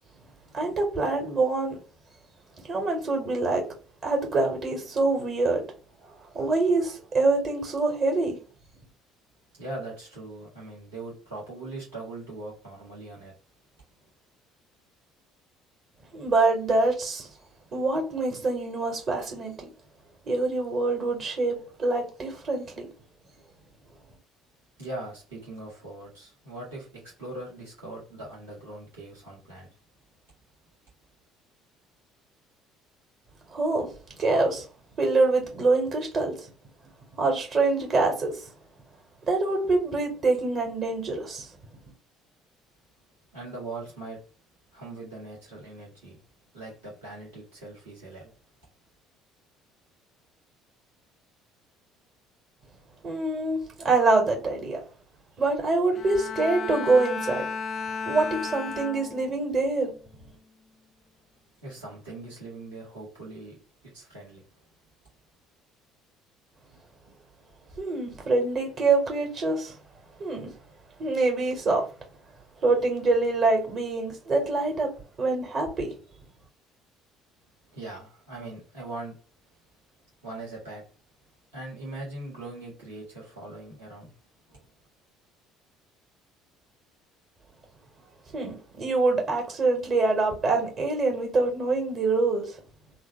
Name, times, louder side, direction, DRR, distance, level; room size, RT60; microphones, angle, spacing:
voice 1, 0.5-1.8 2.7-3.6 4.0-5.6 6.3-8.4 16.1-17.3 17.7-19.7 20.3-22.9 33.5-33.9 34.2-34.6 35.0-36.3 37.2-38.4 39.3-41.5 53.0-54.8 55.4-57.4 58.0-59.9 67.8-69.7 70.2-70.5 71.0-71.8 72.6-74.9 75.2-75.9 88.3-92.5, right 3 dB, 45° right, 1.3 m, -25 dB
voice 2, 9.6-13.3 14.0-14.1 24.8-29.7 43.3-44.2 44.7-46.2 46.5-48.3 61.6-63.6 63.9-64.4 77.7-79.2 80.2-80.8 81.5-84.1 84.5-84.6, right 2 dB, 75° right, 1.4 m, -40 dB
Bowed string instrument, 55.9-59.5 60.0-60.4, left 5 dB, 40° left, 0.3 m, -34 dB
3.4 x 2.3 x 3.0 m
figure-of-eight pair, 55°, 0 cm